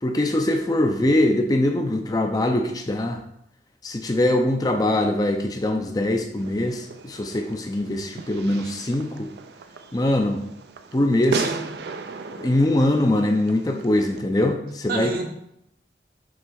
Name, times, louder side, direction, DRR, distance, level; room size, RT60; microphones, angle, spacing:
voice 1, 0.0-3.2 3.8-9.3 9.9-10.4 10.9-11.4 12.4-15.1, left 1 dB, 20° left, 4 dB, 0.5 m, -22 dB
Fireworks, 6.4-14.2, right 4 dB, 70° right, 0.4 m, -36 dB
voice 2, 11.0-11.8 14.9-15.2, right 3 dB, 55° right, 3 dB, 0.9 m, -31 dB
6.3 x 3.2 x 4.6 m, 0.77 s
head